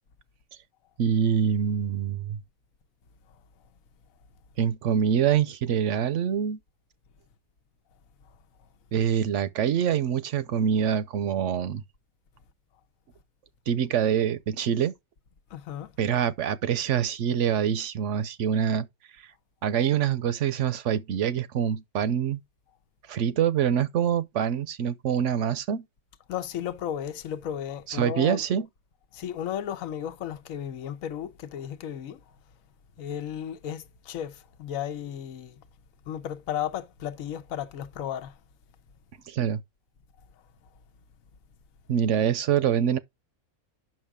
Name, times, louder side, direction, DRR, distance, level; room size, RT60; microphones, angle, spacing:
voice 1, 1.0-2.4 4.6-6.6 8.9-11.8 13.7-14.9 16.0-18.9 19.6-22.4 23.1-25.8 27.9-28.7 39.3-39.6 41.9-43.0, right 8 dB, 65° right, 0.9 m, -25 dB
voice 2, 15.5-15.9 26.3-28.4 29.1-32.2 33.0-35.6 36.1-38.3, left 10 dB, 75° left, 1.2 m, -34 dB
8.8 x 6.1 x 3.6 m
omnidirectional pair, 1.5 m